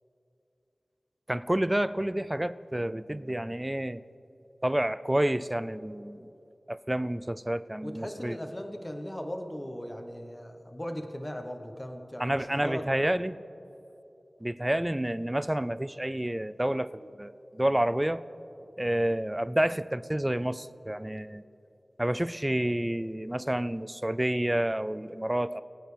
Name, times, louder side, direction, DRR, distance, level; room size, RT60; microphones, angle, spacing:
voice 1, 1.3-4.0 4.6-6.3 6.7-8.4 12.2-13.4 14.4-18.2 18.8-21.4 22.0-25.6, right 1 dB, 15° right, 16 dB, 0.3 m, -29 dB
voice 2, 7.8-12.9, equal, 20° left, 4 dB, 1.1 m, -38 dB
21.0 x 9.1 x 3.4 m, 2.9 s
wide cardioid pair, 60°, 0 cm